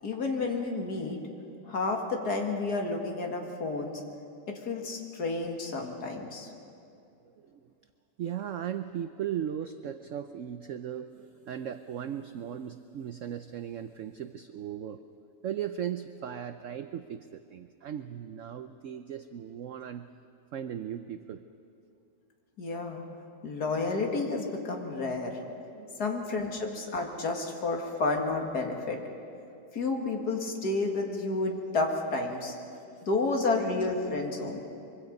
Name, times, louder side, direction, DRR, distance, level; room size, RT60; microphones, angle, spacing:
voice 1, 0.0-1.2 1.6-4.0 4.5-6.5 22.6-23.0 23.4-25.4 26.0-29.0 29.7-32.5 33.0-34.6, left 3 dB, 65° left, 2 dB, 2.5 m, -31 dB
voice 2, 8.2-15.0 15.4-20.1 20.5-21.4 25.7-26.0, right 9 dB, 65° right, 10 dB, 0.8 m, -37 dB
24.5 x 24.0 x 5.3 m, 2.6 s
omnidirectional pair, 1.8 m